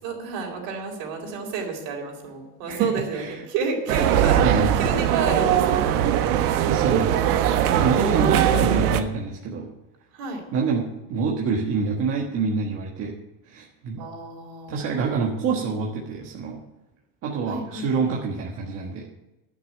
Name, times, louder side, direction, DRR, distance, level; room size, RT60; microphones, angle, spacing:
voice 1, 0.0-4.4 4.7-6.0 7.9-8.6 10.1-10.4 14.0-15.0 17.5-18.1, right 4 dB, 50° right, 1 dB, 4.4 m, -31 dB
voice 2, 2.7-3.4 4.2-5.0 6.6-7.2 7.7-9.7 10.5-13.1 13.5-14.1 14.7-16.6 17.2-19.1, right 4 dB, 30° right, -2 dB, 1.4 m, -26 dB
sound 1, 3.9-9.0, right 10 dB, 85° right, 1.3 m, -20 dB
11.5 x 6.5 x 9.1 m, 0.99 s
cardioid pair, 170°, 43 cm